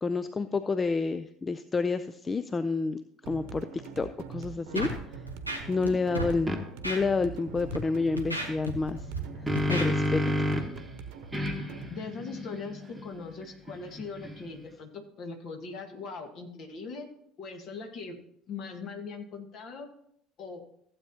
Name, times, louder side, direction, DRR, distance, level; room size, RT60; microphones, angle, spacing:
voice 1, 0.0-4.9 5.7-6.6 6.8-9.1 9.7-10.2, left 4 dB, 20° left, 12 dB, 0.4 m, -29 dB
sound 1, 3.2-11.9, right 5 dB, 60° right, 0.9 m, -44 dB
Scratching (performance technique), 4.7-5.0 5.3-5.9 6.1-6.3 6.8-7.0 7.5-7.8 8.2-9.2 9.6-9.9, right 1 dB, 90° left, 1.1 m, -33 dB
sound 2, 6.5-6.6 9.0-10.8 11.3-14.7, left 1 dB, 5° right, 1.3 m, -31 dB
voice 2, 11.9-17.1 17.4-18.2 18.5-19.9 20.4-20.6, left 4 dB, 45° left, 5 dB, 1.6 m, -40 dB
15.0 x 8.2 x 2.8 m, 0.69 s
figure-of-eight pair, 60°, 0 cm